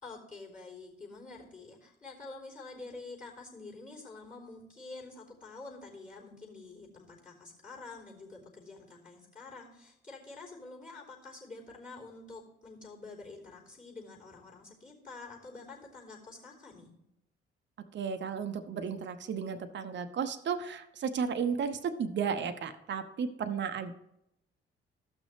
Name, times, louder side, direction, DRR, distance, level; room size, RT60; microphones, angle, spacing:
voice 1, 0.0-16.9, left 3 dB, 30° left, -4 dB, 3.8 m, -48 dB
voice 2, 17.9-23.9, right 6 dB, 40° right, 9 dB, 0.7 m, -34 dB
14.0 x 6.1 x 3.3 m, 0.83 s
figure-of-eight pair, 40°, 29 cm